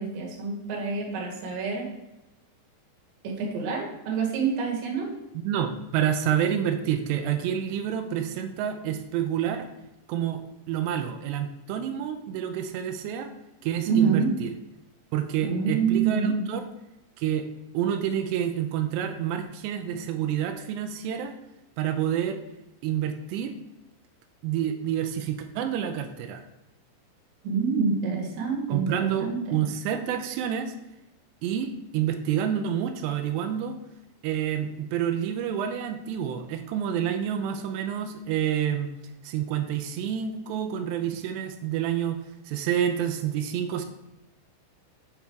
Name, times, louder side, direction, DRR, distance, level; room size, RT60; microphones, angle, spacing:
voice 1, 0.0-1.9 3.2-5.1 13.9-14.3 15.4-16.4 27.4-29.6, right 5 dB, 55° right, -2 dB, 3.3 m, -27 dB
voice 2, 5.4-9.7 10.1-10.4 10.7-13.3 13.6-14.5 15.1-16.6 17.2-17.5 17.7-21.4 21.8-22.4 22.8-23.6 24.4-26.4 28.7-30.7 31.4-33.8 34.2-38.9 39.2-42.2 42.5-43.9, right 9 dB, 85° right, 7 dB, 2.5 m, -28 dB
8.8 x 5.5 x 4.6 m, 0.94 s
omnidirectional pair, 5.6 m